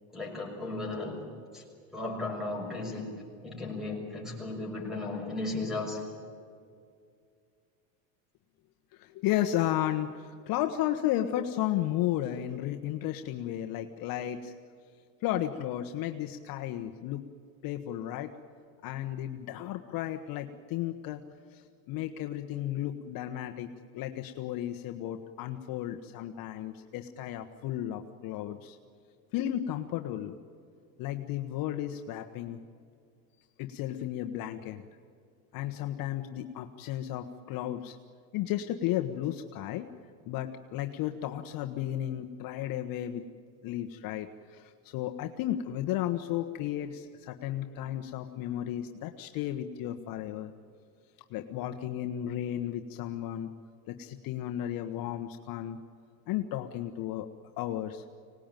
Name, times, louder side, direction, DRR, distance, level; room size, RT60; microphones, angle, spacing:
voice 1, 0.1-1.2 1.5-1.6 1.9-6.0, left 2 dB, ahead, 1 dB, 6.5 m, -35 dB
voice 2, 8.9-14.5 15.2-17.3 17.6-18.3 18.8-21.2 21.5-23.7 23.9-28.8 29.3-30.4 31.0-32.6 33.6-34.8 35.5-38.0 38.3-39.9 40.3-43.2 43.6-50.5 51.3-53.5 53.9-55.8 56.3-57.3 57.6-58.0, left 12 dB, 50° left, 5 dB, 1.3 m, -33 dB
25.5 x 19.0 x 9.1 m, 2.3 s
cardioid pair, 145°, 42 cm